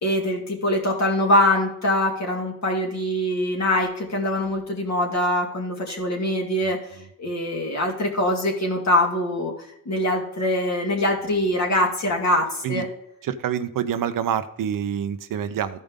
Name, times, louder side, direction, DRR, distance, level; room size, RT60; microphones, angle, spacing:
voice 1, 0.0-6.8 7.2-12.9, left 1 dB, 50° left, 0 dB, 2.9 m, -23 dB
voice 2, 13.2-15.8, right 9 dB, 65° right, 11 dB, 0.8 m, -26 dB
13.5 x 5.2 x 3.7 m, 0.75 s
cardioid pair, 90°, 35 cm